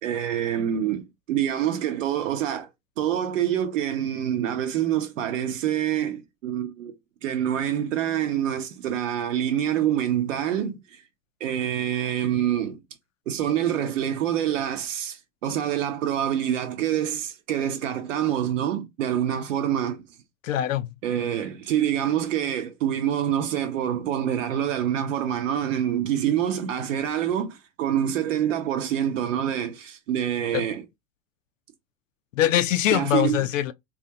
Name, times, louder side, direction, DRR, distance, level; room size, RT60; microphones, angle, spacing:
voice 1, 0.0-2.7 3.0-6.9 7.2-11.0 11.4-12.8 13.3-20.0 21.0-30.9 32.9-33.5, right 10 dB, 65° right, 0.8 m, -26 dB
voice 2, 20.4-20.9 30.5-30.6 32.4-33.7, left 12 dB, 70° left, 0.5 m, -23 dB
4.2 x 2.4 x 2.8 m
figure-of-eight pair, 80°, 41 cm